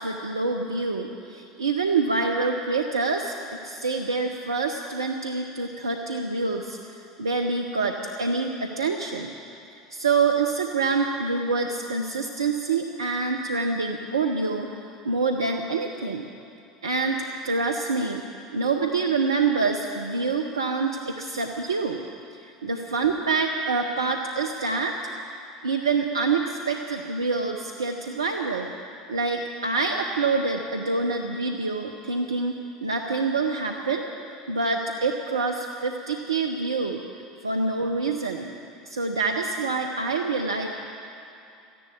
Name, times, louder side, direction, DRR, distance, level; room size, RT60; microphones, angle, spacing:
voice 1, 0.0-6.8 7.2-9.3 9.9-14.7 15.0-16.3 16.8-18.2 18.5-22.0 22.4-25.0 25.6-28.7 29.1-34.1 34.5-37.0 37.4-38.5 38.9-40.7, right 4 dB, 90° right, 3 dB, 0.8 m, -26 dB
14.0 x 10.5 x 9.1 m, 2.7 s
hypercardioid pair, 75°, 2 cm